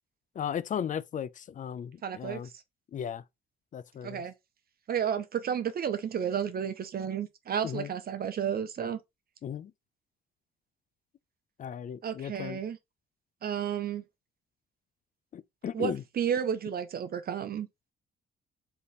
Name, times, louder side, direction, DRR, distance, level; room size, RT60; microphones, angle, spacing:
voice 1, 0.4-2.5 2.9-3.2 3.7-4.2 7.6-7.9 9.4-9.7 11.6-12.6 15.3-16.0, left 8 dB, 40° left, 0.4 m, -36 dB
voice 2, 2.0-2.4 4.0-4.3 4.9-9.0 12.0-12.8 13.4-14.0 15.7-17.7, right 8 dB, 50° right, 0.6 m, -32 dB
3.4 x 2.8 x 4.0 m
cardioid pair, 90°, 20 cm